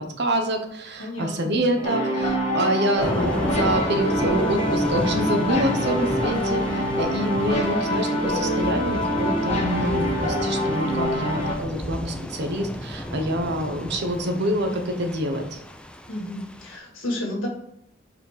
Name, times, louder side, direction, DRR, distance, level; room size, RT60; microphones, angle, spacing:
voice 1, 0.2-15.6, right 1 dB, 60° right, 5 dB, 1.0 m, -26 dB
voice 2, 1.0-1.5 16.1-17.5, left 1 dB, 75° left, -1 dB, 1.9 m, -31 dB
sound 1, 1.2-2.7 3.0-3.1 3.7-3.9 4.2-4.7 5.0-5.2 5.5-6.0 6.3-6.4 6.7-6.8, right 2 dB, 20° right, 1.1 m, -34 dB
sound 2, 1.8-11.5, equal, 35° left, 1.6 m, -25 dB
Thunder / Rain, 3.0-16.8, equal, 5° left, 0.4 m, -32 dB
4.9 x 4.3 x 5.0 m, 0.72 s
head